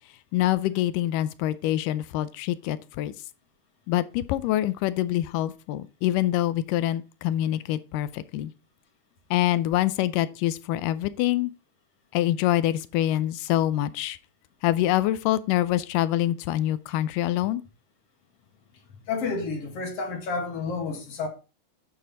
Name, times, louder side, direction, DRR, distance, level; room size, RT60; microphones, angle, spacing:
voice 1, 0.3-3.1 3.9-8.5 9.3-11.5 12.1-14.2 14.6-17.6, left 14 dB, 90° left, 2.2 m, -25 dB
voice 2, 19.1-21.3, left 4 dB, 55° left, 2.3 m, -30 dB
7.5 x 6.7 x 4.0 m
omnidirectional pair, 3.7 m